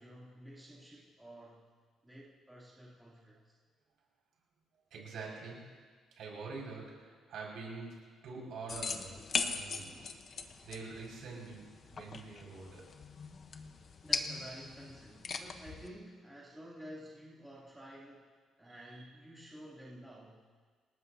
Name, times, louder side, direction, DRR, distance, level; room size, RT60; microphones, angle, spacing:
voice 1, 0.0-1.7 2.0-3.6 9.7-10.2 11.9-12.0 12.4-12.5 13.8-20.4, equal, 5° right, -7 dB, 2.8 m, -52 dB
voice 2, 4.9-5.7 6.2-9.9 10.6-11.6 11.9-12.9, right 4 dB, 65° right, -2 dB, 5.5 m, -45 dB
sound 1, 8.7-15.9, left 5 dB, 35° left, 0.9 m, -40 dB
28.0 x 18.5 x 2.7 m, 1.5 s
cardioid pair, 165°, 0 cm